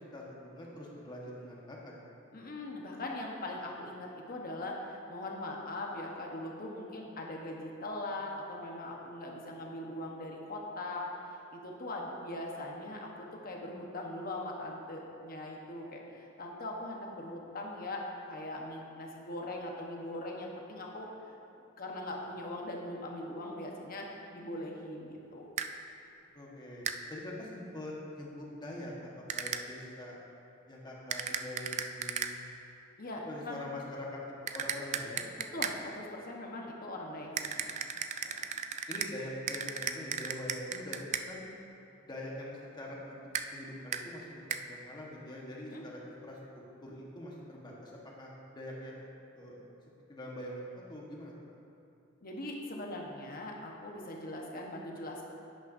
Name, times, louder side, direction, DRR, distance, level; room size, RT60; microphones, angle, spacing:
voice 1, 0.1-2.0 26.3-26.8 27.1-30.2 30.7-32.4 33.2-35.2 38.9-41.0 41.3-41.4 42.0-43.2 43.5-46.4 46.8-49.1 49.3-49.6 50.1-51.3, left 1 dB, 20° left, -3 dB, 1.3 m, -44 dB
voice 2, 2.3-21.1 21.8-25.5 33.0-33.6 35.4-37.7 38.2-38.5 45.7-45.9 52.2-55.3, left 1 dB, 45° left, -1 dB, 1.1 m, -41 dB
sound 1, 25.6-25.7 26.9-27.0 29.3-29.6 31.1-32.3 34.5-35.8 37.4-39.1 39.5-41.3 43.3-43.5 43.9-44.0 44.5-44.6, right 7 dB, 35° right, 0.3 m, -35 dB
11.0 x 8.8 x 2.7 m, 2.8 s
head